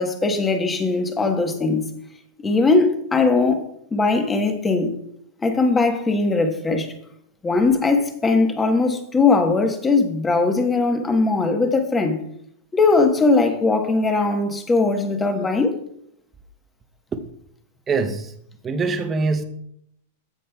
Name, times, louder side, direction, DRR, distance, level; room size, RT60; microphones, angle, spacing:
voice 1, 0.0-1.9 2.4-3.7 3.9-4.9 5.4-6.9 7.4-12.2 12.7-15.7, left 3 dB, 15° left, 1.2 m, -20 dB
voice 2, 17.9-18.3 18.6-19.4, right 4 dB, 20° right, 0.7 m, -23 dB
15.5 x 5.3 x 2.3 m
hypercardioid pair, 135°, 0 cm